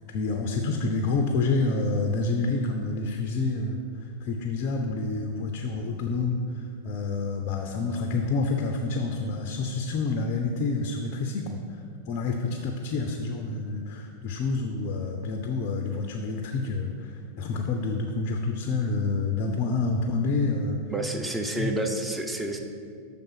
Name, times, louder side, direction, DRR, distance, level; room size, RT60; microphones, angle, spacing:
voice 1, 0.1-11.8 12.1-20.8 21.6-21.7, left 3 dB, 40° left, 4 dB, 0.5 m, -28 dB
voice 2, 20.9-22.6, right 1 dB, 5° right, 3 dB, 0.6 m, -29 dB
6.6 x 3.5 x 5.9 m, 2.3 s
figure-of-eight pair, 90°, 0 cm